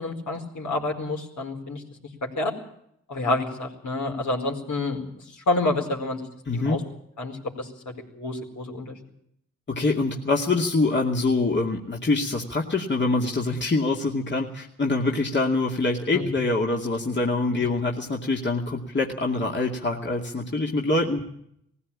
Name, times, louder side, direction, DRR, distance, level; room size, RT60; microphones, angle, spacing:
voice 1, 0.0-1.8 2.2-2.5 3.1-5.1 5.4-6.3 6.5-6.8 7.2-9.0 16.1-16.3, left 2 dB, 65° left, 1 dB, 4.7 m, -28 dB
voice 2, 6.5-6.8 9.7-21.2, left 3 dB, 35° left, 0 dB, 2.5 m, -25 dB
19.0 x 15.5 x 8.7 m, 0.73 s
cardioid pair, 55°, 31 cm